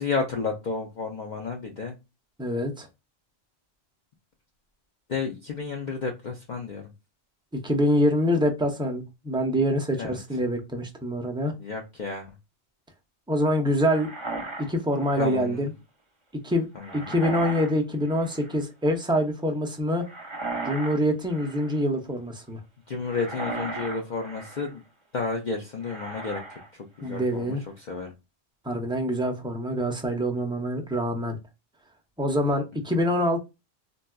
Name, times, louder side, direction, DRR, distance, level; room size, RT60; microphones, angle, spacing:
voice 1, 0.0-1.9 5.1-6.8 10.0-10.2 11.6-12.3 15.2-15.7 16.8-17.0 22.9-24.8 25.1-26.4 27.0-27.6 27.9-28.1, left 4 dB, 50° left, 0.6 m, -31 dB
voice 2, 2.4-2.9 7.5-11.5 13.3-14.1 14.6-15.7 16.4-16.7 16.9-20.1 20.6-22.6 27.0-27.6 28.6-31.4 32.2-33.4, equal, 5° right, 0.3 m, -25 dB
sound 1, 13.8-15.4 16.8-17.8 18.0-18.6 20.0-21.0 21.3-21.8 23.0-24.7 25.8-26.7 27.0-27.4, right 2 dB, 30° right, 0.7 m, -36 dB
3.9 x 2.3 x 2.2 m
omnidirectional pair, 1.1 m